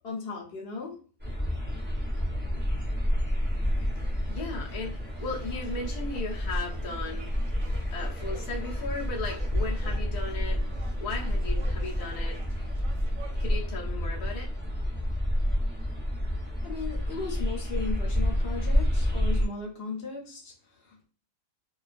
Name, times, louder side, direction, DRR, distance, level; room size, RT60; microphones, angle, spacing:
voice 1, 0.0-1.0 16.6-21.0, left 4 dB, 55° left, 0 dB, 0.7 m, -37 dB
sound 1, 1.2-19.5, equal, 15° right, 0.4 m, -29 dB
sound 2, 3.4-13.6, right 5 dB, 70° right, 0.9 m, -51 dB
voice 2, 4.3-7.3 7.9-10.6 11.0-12.4 13.4-14.5, left 3 dB, 80° left, -3 dB, 0.3 m, -36 dB
2.3 x 2.3 x 2.4 m, 0.39 s
omnidirectional pair, 1.6 m